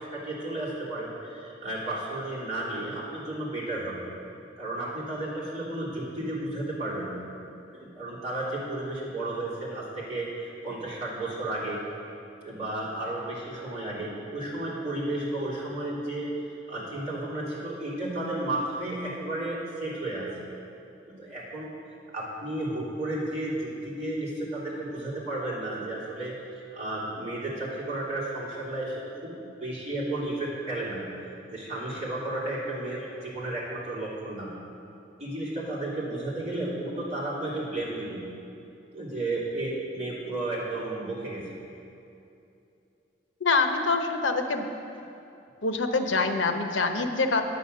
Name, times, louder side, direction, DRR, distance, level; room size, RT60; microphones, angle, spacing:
voice 1, 0.0-4.0 4.6-7.2 7.7-11.8 12.4-20.3 21.2-21.7 22.1-29.3 29.6-31.0 31.5-34.5 35.2-38.2 38.9-41.4, right 1 dB, 35° right, -8 dB, 3.1 m, -33 dB
voice 2, 43.4-44.6 45.6-47.4, left 3 dB, 80° left, 6 dB, 0.8 m, -25 dB
9.2 x 9.0 x 6.5 m, 2.7 s
head